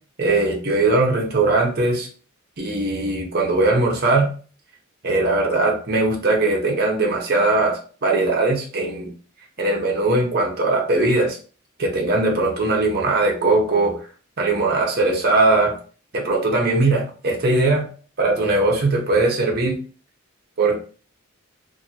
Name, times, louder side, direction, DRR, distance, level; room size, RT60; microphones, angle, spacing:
voice 1, 0.2-2.1 2.6-4.3 5.0-9.1 9.6-11.4 11.8-14.0 14.4-15.8 16.1-17.9 18.2-19.8 20.6-20.8, right 2 dB, 50° right, 0 dB, 0.8 m, -20 dB
2.7 x 2.6 x 2.7 m, 0.39 s
head